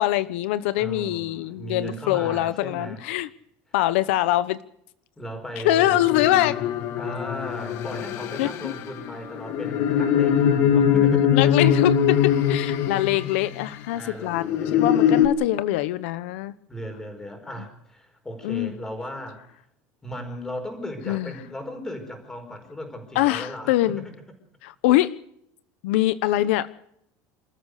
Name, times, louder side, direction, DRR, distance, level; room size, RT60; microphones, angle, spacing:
voice 1, 0.0-3.3 3.7-4.6 5.6-6.6 8.4-8.7 11.3-16.5 18.4-18.7 21.1-21.3 23.1-24.0 24.6-25.1 25.8-26.7, left 15 dB, 85° left, 14 dB, 1.1 m, -23 dB
voice 2, 0.8-3.0 5.2-6.1 7.0-11.7 13.4-14.9 16.7-19.4 20.0-24.1, equal, 10° left, 5 dB, 4.9 m, -37 dB
sound 1, 5.8-13.6 14.3-15.3, left 9 dB, 45° left, 2.0 m, -22 dB
27.5 x 14.0 x 6.6 m, 0.72 s
cardioid pair, 175°, 6 cm